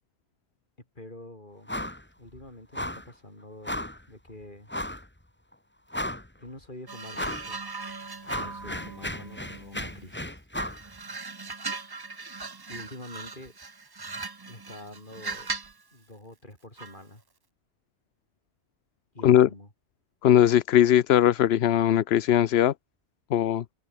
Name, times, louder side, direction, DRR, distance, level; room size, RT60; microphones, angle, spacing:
voice 1, 0.9-1.7 2.2-4.7 6.4-7.6 8.4-10.4 12.7-13.6 14.5-15.5 15.9-17.2 19.1-19.7, left 1 dB, 45° left, 6.2 m, -46 dB
sound 1, 1.7-2.0 2.3-2.4 2.7-3.1 3.6-4.0 4.7-5.1 5.5-5.6 5.9-6.4 7.1-7.5 7.9-10.8, left 1 dB, 10° left, 2.0 m, -34 dB
sound 2, 6.9-10.1 10.5-15.8 16.8-17.0, right 4 dB, 25° right, 0.7 m, -39 dB
voice 2, 20.2-22.7 23.3-23.6, left 11 dB, 65° left, 0.9 m, -20 dB
omnidirectional pair, 1.2 m